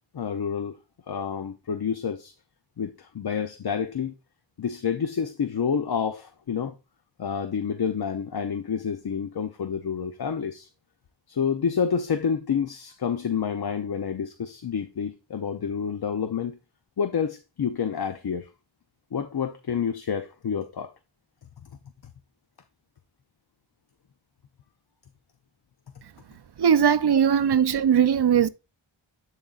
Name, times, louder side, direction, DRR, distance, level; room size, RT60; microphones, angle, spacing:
voice 1, 0.1-0.8 1.1-2.3 2.8-4.1 4.6-6.8 7.2-10.7 11.3-16.6 17.0-18.5 19.1-20.9, left 7 dB, 50° left, 0.6 m, -28 dB
voice 2, 26.6-28.5, right 8 dB, 55° right, 0.6 m, -19 dB
11.0 x 3.8 x 2.4 m
wide cardioid pair, 45°, 49 cm